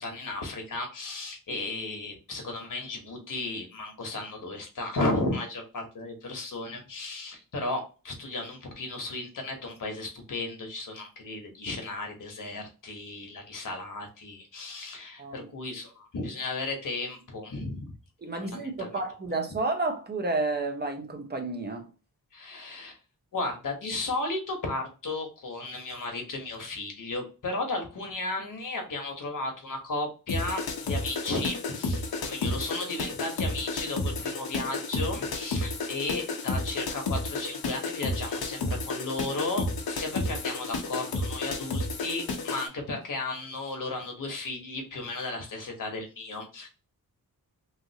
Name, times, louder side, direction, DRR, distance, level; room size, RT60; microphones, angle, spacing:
voice 1, 0.0-17.9 18.4-18.9 22.3-23.0 23.3-46.7, left 2 dB, 60° left, 1.0 m, -34 dB
voice 2, 15.2-15.5 18.2-21.9, right 2 dB, 25° right, 0.6 m, -31 dB
sound 1, 30.3-42.7, left 2 dB, 80° left, 0.8 m, -32 dB
3.2 x 2.5 x 2.7 m
wide cardioid pair, 150°, 37 cm